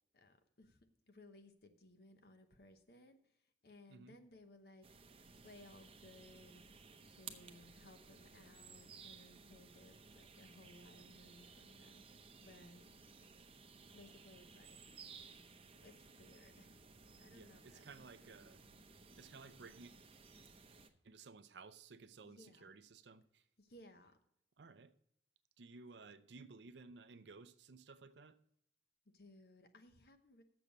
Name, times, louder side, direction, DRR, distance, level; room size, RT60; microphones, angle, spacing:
voice 1, 0.1-4.9 5.3-6.8 7.2-12.9 13.9-14.8 15.8-16.8 17.2-17.9 18.2-18.3 22.2-22.7 23.6-24.2 29.1-30.4, left 1 dB, 60° left, 1.0 m, -62 dB
sound 1, 4.8-20.9, right 5 dB, 30° right, 0.7 m, -58 dB
voice 2, 17.3-18.6 19.2-19.9 21.0-23.4 24.6-24.9 25.6-28.4, right 4 dB, 80° right, 0.6 m, -56 dB
7.0 x 6.8 x 7.2 m
head